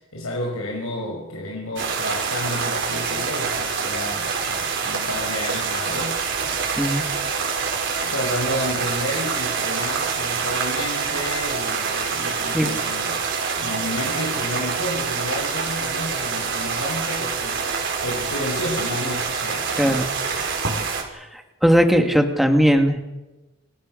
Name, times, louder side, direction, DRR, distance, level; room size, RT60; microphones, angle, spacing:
voice 1, 0.0-6.6 8.0-13.2 13.5-20.5, left 1 dB, 90° left, -1 dB, 5.7 m, -31 dB
sound 1, 1.8-21.0, right 5 dB, 55° right, 5.2 m, -26 dB
voice 2, 21.1-23.0, equal, ahead, 4 dB, 2.2 m, -19 dB
29.0 x 24.5 x 6.6 m, 1.1 s
head